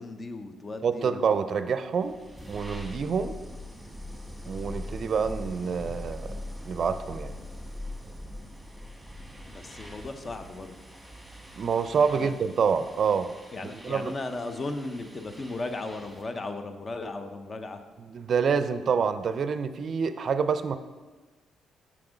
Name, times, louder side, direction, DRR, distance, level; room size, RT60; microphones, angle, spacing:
voice 1, 0.0-1.3 9.5-10.8 12.1-12.3 13.5-17.8, left 2 dB, 35° left, 8 dB, 0.7 m, -36 dB
voice 2, 0.8-2.2 2.5-3.4 4.5-6.3 6.6-7.3 11.6-13.3 13.8-14.1 18.0-20.8, right 6 dB, 55° right, 11 dB, 0.4 m, -27 dB
sound 1, 1.8-16.4, left 1 dB, 5° right, 1.4 m, -42 dB
6.1 x 5.9 x 5.1 m, 1.3 s
cardioid pair, 90°, 0 cm